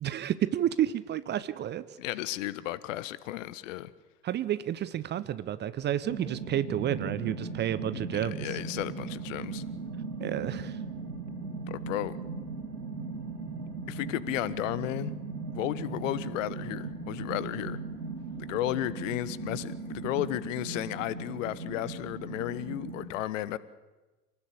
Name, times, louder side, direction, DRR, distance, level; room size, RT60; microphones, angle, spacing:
voice 1, 0.0-1.8 4.2-8.5 10.2-10.8, right 11 dB, 20° right, 15 dB, 0.8 m, -30 dB
voice 2, 2.0-3.9 7.9-9.6 11.7-12.2 13.9-15.2 15.5-17.8 18.4-23.6, left 15 dB, 50° left, 17 dB, 1.2 m, -34 dB
sound 1, 6.0-23.1, right 4 dB, 80° right, 3.8 m, -38 dB
27.0 x 19.0 x 8.5 m, 1.2 s
figure-of-eight pair, 90°, 48 cm